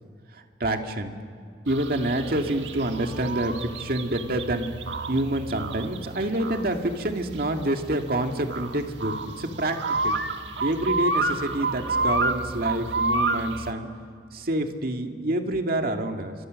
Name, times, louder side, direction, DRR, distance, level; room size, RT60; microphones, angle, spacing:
voice 1, 0.3-1.2 1.7-4.7 5.1-9.8 10.0-10.2 10.6-13.9 14.3-16.3, right 1 dB, 55° right, 4 dB, 2.2 m, -27 dB
sound 1, 1.7-13.7, right 3 dB, 85° right, 1.4 m, -30 dB
29.5 x 25.5 x 6.5 m, 2.2 s
head